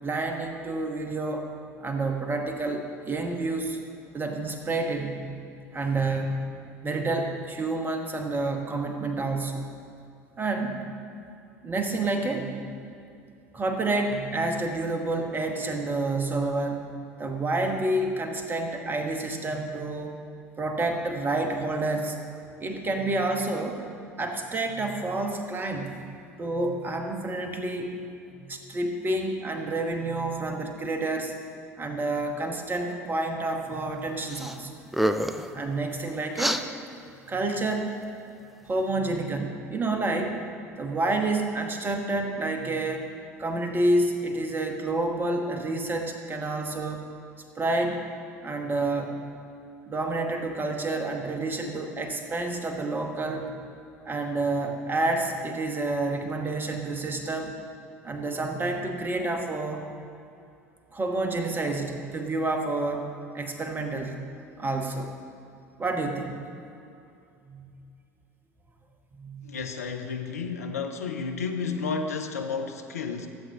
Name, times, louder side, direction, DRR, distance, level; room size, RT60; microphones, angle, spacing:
voice 1, 0.0-1.4 1.8-3.8 4.1-5.5 5.7-6.4 6.8-9.6 10.4-10.8 11.6-12.7 13.5-16.8 17.2-20.2 20.6-22.2 22.6-23.8 24.2-25.9 26.4-28.0 28.4-31.3 31.8-34.7 35.5-36.6 37.3-37.9 38.7-40.4 40.8-43.1 43.4-47.0 47.6-48.0 48.4-49.2 49.9-53.5 54.0-57.5 58.0-59.8 60.9-63.1 63.3-64.2 64.6-65.1 65.8-66.4 67.5-67.7 69.1-69.6, right 2 dB, 25° right, 4 dB, 1.2 m, -29 dB
sound 1, 34.3-34.6 34.9-35.5 36.4-36.6, equal, ahead, 0.4 m, -26 dB
voice 2, 69.4-73.3, left 5 dB, 80° left, 5 dB, 0.5 m, -32 dB
15.0 x 7.6 x 2.8 m, 2.6 s
figure-of-eight pair, 65°, 8 cm